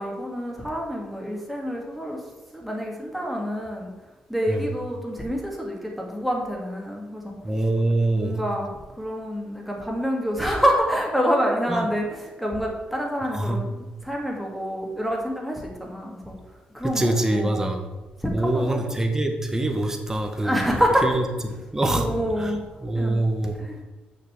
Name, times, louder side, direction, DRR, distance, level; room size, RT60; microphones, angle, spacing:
voice 1, 0.0-2.2 2.5-3.9 4.3-7.4 8.1-8.7 9.0-16.3 16.7-17.8 18.2-19.0 20.4-21.2 21.9-22.6 22.9-23.2 23.6-23.8, equal, ahead, -1 dB, 2.3 m, -27 dB
voice 2, 7.4-8.4 11.7-11.9 13.3-13.6 16.8-17.8 18.3-20.6 21.0-21.2 21.7-22.5 22.8-23.5, right 1 dB, 15° right, 4 dB, 1.4 m, -24 dB
6.7 x 6.0 x 7.2 m, 1.2 s
cardioid pair, 105°, 3 cm